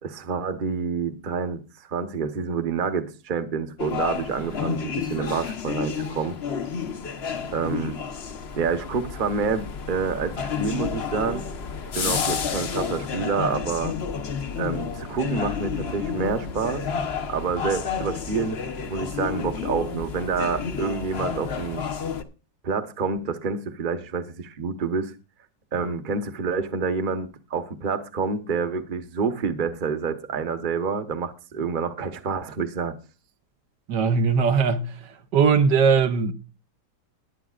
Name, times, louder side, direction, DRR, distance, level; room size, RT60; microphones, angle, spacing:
voice 1, 0.0-6.4 7.5-8.0 8.5-11.4 11.9-13.9 14.6-16.8 17.3-18.6 18.9-21.8 22.6-25.1 25.7-33.0, right 5 dB, 35° right, 1.1 m, -28 dB
sound 1, 3.8-22.2, left 6 dB, 45° left, 1.0 m, -30 dB
voice 2, 33.9-34.9 35.3-36.3, right 5 dB, 75° right, 1.6 m, -19 dB
21.0 x 9.1 x 2.5 m
omnidirectional pair, 1.9 m